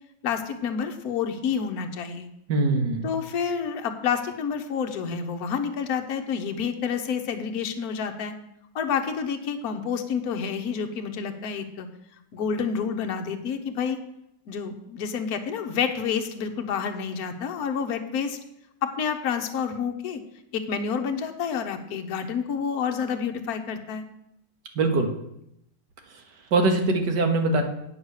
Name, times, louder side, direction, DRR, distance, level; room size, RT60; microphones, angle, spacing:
voice 1, 0.2-2.3 3.0-8.3 8.7-11.9 12.3-14.0 14.5-18.4 18.8-20.2 20.5-24.0, left 6 dB, 65° left, 6 dB, 1.4 m, -29 dB
voice 2, 2.5-3.1 24.8-25.1 26.5-27.6, right 2 dB, 80° right, 4 dB, 1.8 m, -22 dB
9.5 x 5.9 x 6.4 m, 0.79 s
omnidirectional pair, 1.8 m